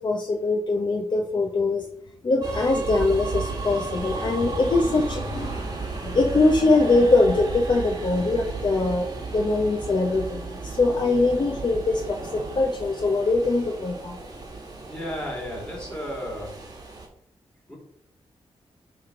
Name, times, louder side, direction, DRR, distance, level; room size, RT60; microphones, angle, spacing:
voice 1, 0.0-1.9 2.2-14.2, left 3 dB, 45° left, 2 dB, 0.8 m, -22 dB
sound 1, 2.4-17.1, right 4 dB, 35° right, 1.8 m, -34 dB
voice 2, 14.9-16.6 17.7-17.8, equal, 10° left, -2 dB, 3.1 m, -33 dB
10.0 x 3.5 x 5.0 m, 0.70 s
wide cardioid pair, 105°, 11 cm